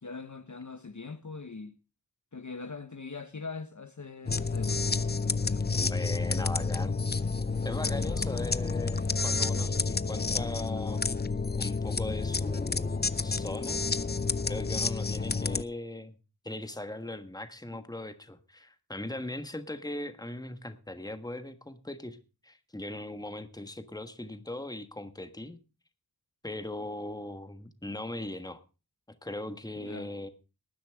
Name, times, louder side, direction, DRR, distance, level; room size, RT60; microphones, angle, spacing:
voice 1, 0.0-1.7 2.3-4.8 5.2-5.7 6.3-6.7 7.6-8.3 17.7-17.8 29.8-30.1, left 4 dB, 50° left, 1.2 m, -42 dB
sound 1, 4.3-15.6, left 4 dB, 25° left, 0.6 m, -30 dB
voice 2, 5.7-6.9 7.6-11.0 11.6-13.8 14.4-16.1 16.4-22.2 22.4-25.6 26.4-28.6 29.2-30.3, left 1 dB, 10° left, 1.4 m, -39 dB
19.5 x 10.0 x 3.5 m
wide cardioid pair, 60°, 38 cm